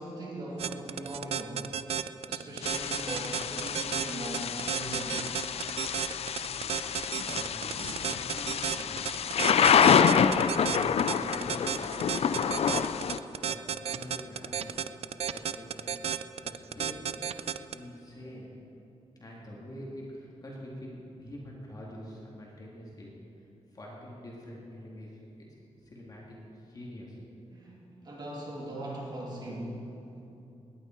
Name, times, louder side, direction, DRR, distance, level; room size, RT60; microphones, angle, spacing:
voice 1, 0.0-1.6 2.3-5.4 27.5-30.2, right 1 dB, 35° right, -3 dB, 2.8 m, -40 dB
sound 1, 0.6-17.7, right 8 dB, 55° right, 0.4 m, -32 dB
Thunder / Rain, 2.6-13.2, left 7 dB, 55° left, 0.4 m, -27 dB
voice 2, 6.5-6.9 7.2-12.6 13.4-14.7 15.3-16.0 16.4-17.2 17.4-18.5 19.2-23.1 23.7-25.5 25.8-27.3, equal, 30° left, -4 dB, 2.2 m, -46 dB
18.5 x 10.0 x 4.5 m, 2.8 s
wide cardioid pair, 165°, 12 cm